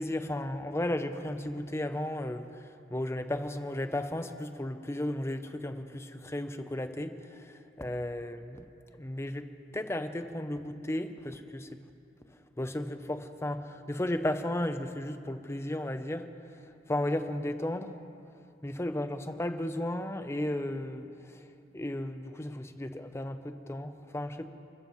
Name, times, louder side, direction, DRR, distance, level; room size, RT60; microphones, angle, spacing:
voice 1, 0.0-2.5 2.9-8.6 9.0-9.5 9.7-11.7 12.6-16.3 16.9-17.9 18.6-21.1 21.7-24.5, left 1 dB, 15° left, 9 dB, 0.6 m, -34 dB
29.5 x 14.5 x 3.1 m, 2.6 s
head